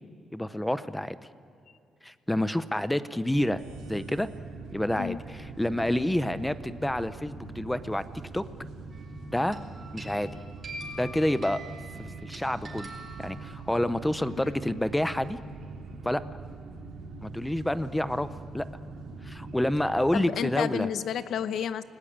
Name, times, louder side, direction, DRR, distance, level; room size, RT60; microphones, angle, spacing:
voice 1, 0.3-1.2 2.0-3.6 3.9-4.3 4.7-8.4 9.3-9.6 9.9-10.3 11.0-11.6 12.0-12.9 13.2-15.4 16.0-16.2 17.2-18.6 19.2-20.9, left 1 dB, 5° left, 13 dB, 0.7 m, -28 dB
sound 1, 3.3-20.2, right 3 dB, 75° right, 2.4 m, -43 dB
sound 2, 8.9-9.2 9.5-13.9, right 1 dB, 30° right, 4.3 m, -44 dB
voice 2, 20.1-21.8, left 9 dB, 65° left, 13 dB, 0.9 m, -31 dB
29.0 x 19.5 x 8.8 m, 2.8 s
cardioid pair, 160°, 0 cm